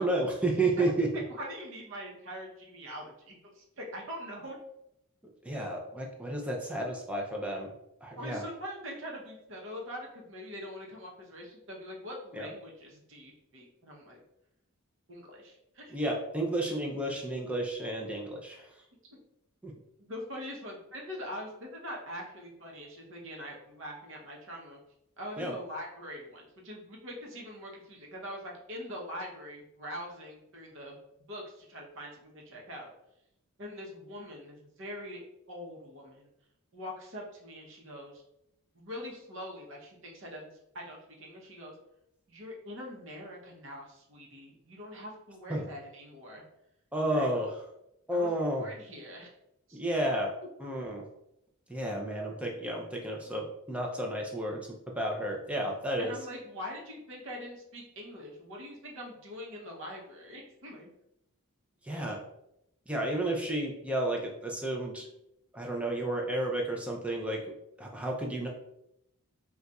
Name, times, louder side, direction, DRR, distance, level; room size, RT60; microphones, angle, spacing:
voice 1, 0.0-1.2 5.4-7.7 8.0-8.4 12.3-12.5 15.9-18.7 19.6-19.7 25.4-25.5 45.5-45.6 46.9-47.6 48.1-48.7 49.7-50.3 50.6-51.0 51.7-54.7 55.0-56.1 61.8-62.2 62.9-65.1 65.5-67.4 67.8-68.5, right 1 dB, 5° right, 0 dB, 0.4 m, -31 dB
voice 2, 1.3-4.6 8.1-14.2 15.1-15.9 19.1-19.2 20.1-24.8 25.2-31.0 31.3-32.9 33.6-35.2 35.5-36.3 36.7-38.2 38.7-41.7 42.3-46.4 47.1-47.5 48.1-49.3 49.7-49.8 53.3-53.4 56.0-60.9, equal, 60° right, -1 dB, 0.8 m, -43 dB
2.4 x 2.3 x 4.0 m, 0.80 s
head